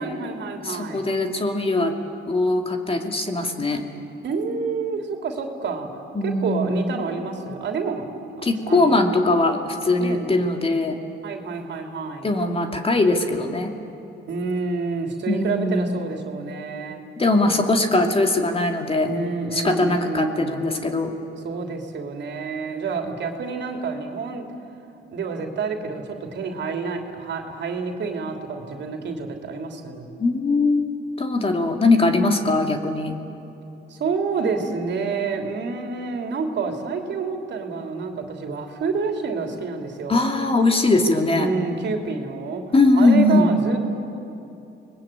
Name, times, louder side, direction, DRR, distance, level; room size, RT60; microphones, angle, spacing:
voice 1, 0.0-1.1 4.2-5.9 6.2-8.1 8.4-9.1 10.0-10.3 11.2-12.3 14.3-17.0 19.0-20.6 21.3-24.4 25.1-30.1 33.9-40.2 41.3-42.6 42.9-43.8, right 4 dB, 65° right, 4 dB, 3.1 m, -28 dB
voice 2, 0.6-1.9 2.3-3.9 6.1-7.0 8.4-11.0 12.2-13.7 15.3-16.0 17.2-19.1 19.5-21.1 30.2-30.9 31.2-33.1 40.1-41.5 42.7-43.6, left 2 dB, 30° left, 4 dB, 2.6 m, -21 dB
29.5 x 21.0 x 8.8 m, 2.8 s
cardioid pair, 90°, 20 cm